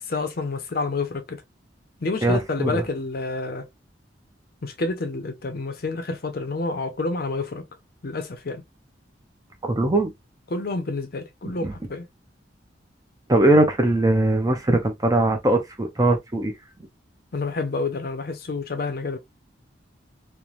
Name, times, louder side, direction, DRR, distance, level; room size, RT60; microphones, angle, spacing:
voice 1, 0.0-1.4 2.0-3.7 4.6-7.6 8.0-8.6 10.5-12.1 17.3-19.2, left 3 dB, 50° left, 0.6 m, -28 dB
voice 2, 2.2-2.8 9.6-10.1 11.4-11.7 13.3-16.5, right 2 dB, 20° right, 0.6 m, -20 dB
3.1 x 2.1 x 2.4 m
head